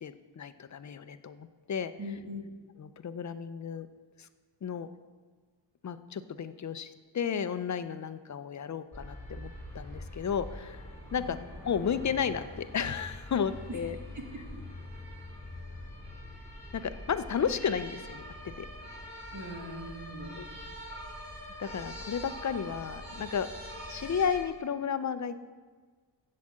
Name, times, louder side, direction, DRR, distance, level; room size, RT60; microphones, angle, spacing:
voice 1, 0.0-1.9 2.8-3.9 4.2-4.3 4.6-4.9 5.8-10.8 11.1-14.0 16.7-18.2 18.6-18.7 20.4-20.5 21.6-23.5 23.9-25.4, left 7 dB, 40° left, 12 dB, 0.5 m, -33 dB
voice 2, 2.0-2.4 11.2-11.4 13.7-13.8 14.1-14.4 19.3-20.4, equal, 40° right, 2 dB, 1.6 m, -40 dB
sound 1, 8.9-24.4, left 1 dB, 5° left, 3.6 m, -44 dB
8.1 x 7.6 x 7.4 m, 1.5 s
wide cardioid pair, 145°, 45 cm